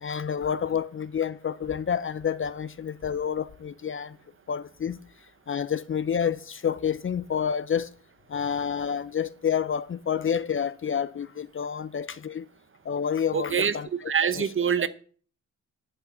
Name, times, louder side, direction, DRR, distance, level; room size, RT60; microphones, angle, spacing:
voice 1, 0.0-4.1 4.5-5.0 5.5-7.9 8.3-12.4 12.9-13.9 14.4-14.5, left 7 dB, 35° left, 0.6 m, -29 dB
voice 2, 13.3-14.9, right 7 dB, 35° right, 0.8 m, -25 dB
10.5 x 6.6 x 7.4 m
wide cardioid pair, 125°, 34 cm